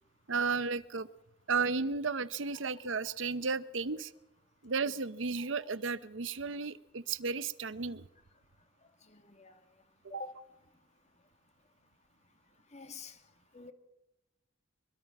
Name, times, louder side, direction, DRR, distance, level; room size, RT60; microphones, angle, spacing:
voice 1, 0.3-1.1 1.5-4.1 4.6-8.0, right 4 dB, 85° right, 0.8 m, -33 dB
voice 2, 9.0-9.6 10.1-10.4 12.7-13.3 13.5-13.7, left 4 dB, 35° left, 1.8 m, -47 dB
23.0 x 22.5 x 6.0 m
head